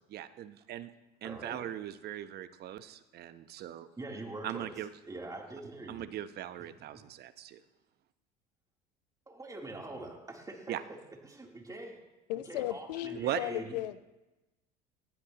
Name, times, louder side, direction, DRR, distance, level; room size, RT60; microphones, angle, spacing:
voice 1, 0.1-0.9 1.2-3.9 4.4-4.9 5.9-7.6 10.7-10.8 13.2-13.4, right 12 dB, 50° right, 12 dB, 1.0 m, -39 dB
voice 2, 1.2-1.6 4.0-4.8 5.0-6.0 9.3-10.8 11.2-12.0 12.4-13.8, right 2 dB, 15° right, 0 dB, 3.3 m, -44 dB
voice 3, 12.3-14.1, left 14 dB, 80° left, 12 dB, 0.9 m, -36 dB
19.5 x 15.0 x 3.0 m, 1.0 s
hypercardioid pair, 75°, 21 cm